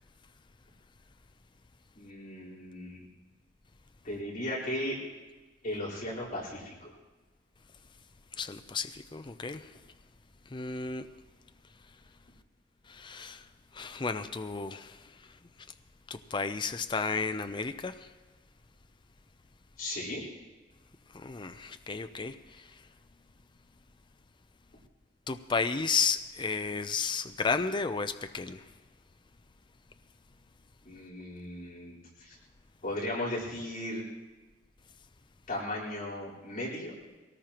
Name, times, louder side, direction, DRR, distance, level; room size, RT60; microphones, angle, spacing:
voice 1, 2.0-3.1 4.0-5.0 5.6-6.9 19.8-20.2 30.8-32.3 32.8-34.0 35.5-36.9, left 1 dB, 45° left, -6 dB, 4.2 m, -36 dB
voice 2, 8.4-9.6 10.5-11.1 12.9-13.4 13.8-14.9 16.3-17.9 21.2-22.3 25.3-28.6, left 5 dB, 25° left, 9 dB, 0.5 m, -32 dB
22.5 x 18.5 x 3.0 m, 1.2 s
head